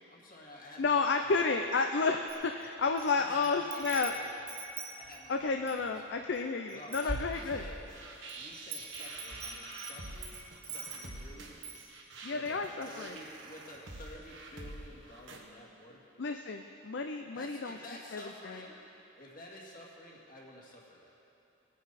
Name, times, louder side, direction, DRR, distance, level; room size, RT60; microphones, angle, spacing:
voice 1, 0.0-1.7 3.1-4.3 4.9-6.2 6.7-7.9 8.3-10.4 10.6-11.6 12.3-16.0 17.3-18.8 19.2-21.2, left 1 dB, 45° left, -3 dB, 2.2 m, -51 dB
voice 2, 0.8-4.1 5.3-7.7 12.2-13.2 16.2-17.8 18.1-18.6, left 4 dB, 60° left, 5 dB, 0.5 m, -31 dB
Wind chime, 2.3-3.1 3.4-5.9 6.4-6.5 6.7-7.8 8.3-11.2 11.6-11.9, right 3 dB, 55° right, 2.1 m, -42 dB
sound 1, 7.3-15.4, right 2 dB, 70° right, 1.4 m, -47 dB
20.0 x 9.8 x 4.2 m, 2.9 s
head